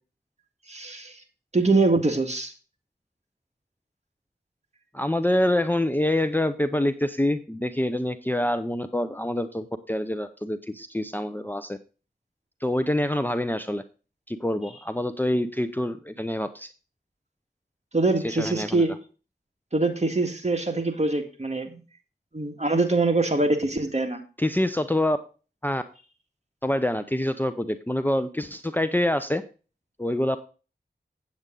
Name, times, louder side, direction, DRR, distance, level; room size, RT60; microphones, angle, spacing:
voice 1, 0.7-1.2 1.5-2.5 17.9-18.9 19.7-21.8 22.3-24.2, right 3 dB, 40° right, 4 dB, 1.9 m, -24 dB
voice 2, 4.9-11.8 12.6-13.8 14.3-16.7 18.2-18.8 24.4-25.2 25.6-25.8 26.6-29.4 30.0-30.4, left 1 dB, 10° left, 10 dB, 0.6 m, -26 dB
8.6 x 8.2 x 3.8 m, 0.34 s
wide cardioid pair, 50°, 18 cm